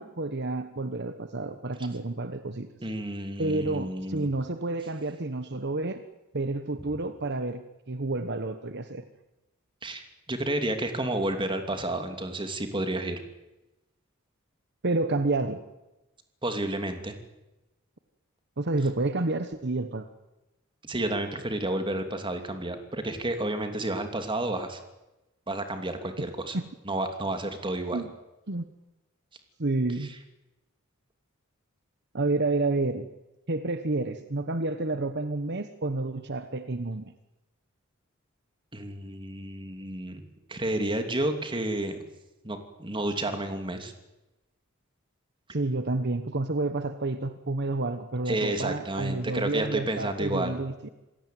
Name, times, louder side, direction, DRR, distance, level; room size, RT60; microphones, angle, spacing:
voice 1, 0.0-2.7 3.4-6.0 6.3-9.0 14.8-15.6 18.6-20.0 26.5-26.6 27.9-28.1 28.5-28.6 29.6-30.1 32.1-33.1 33.5-37.1 45.5-50.9, right 2 dB, 55° right, 10 dB, 1.2 m, -29 dB
voice 2, 2.8-4.3 9.8-13.2 16.4-17.1 20.8-24.8 25.5-26.6 26.8-28.0 38.7-40.2 40.5-42.0 42.4-43.9 48.3-50.6, right 1 dB, 25° right, 6 dB, 2.9 m, -31 dB
27.0 x 17.5 x 9.3 m, 1.0 s
head